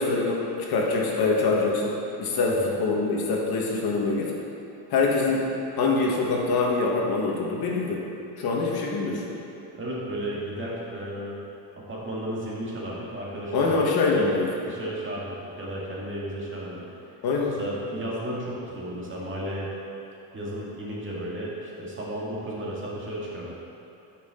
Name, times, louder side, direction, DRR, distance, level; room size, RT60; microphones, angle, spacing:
voice 1, 0.0-1.9 2.2-4.3 4.9-5.5 5.8-8.0 8.4-9.2 13.5-14.5 17.2-17.5, left 3 dB, 55° left, -2 dB, 1.5 m, -24 dB
voice 2, 9.7-11.4 11.8-14.3 14.6-16.8 17.6-19.7 20.3-23.5, right 1 dB, 25° right, -5 dB, 2.0 m, -34 dB
11.0 x 6.0 x 3.8 m, 2.9 s
cardioid pair, 120°, 45 cm